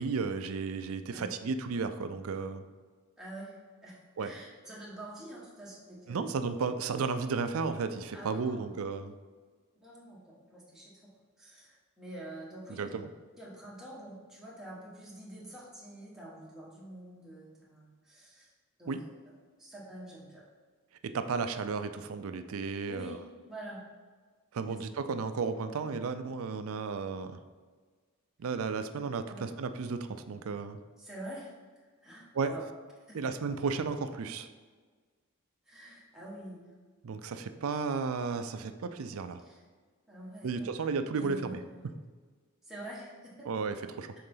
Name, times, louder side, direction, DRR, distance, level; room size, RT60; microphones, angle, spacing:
voice 1, 0.0-2.6 4.2-4.3 6.1-9.1 12.8-13.1 18.9-19.0 21.0-23.2 24.5-27.4 28.4-30.8 32.3-32.5 33.1-34.5 37.0-39.4 40.4-41.6 43.5-44.1, right 4 dB, 70° right, 10 dB, 0.4 m, -33 dB
voice 2, 3.2-6.3 8.1-8.8 9.8-11.1 11.4-12.9 13.4-18.5 18.8-19.0 19.6-20.5 22.9-23.8 24.7-24.8 29.3-29.5 31.0-32.6 33.1-33.3 35.7-36.7 38.8-38.9 39.4-39.6 40.1-40.7 41.1-41.7 42.6-43.5, right 1 dB, ahead, -6 dB, 1.4 m, -47 dB
6.6 x 3.9 x 3.8 m, 1.5 s
head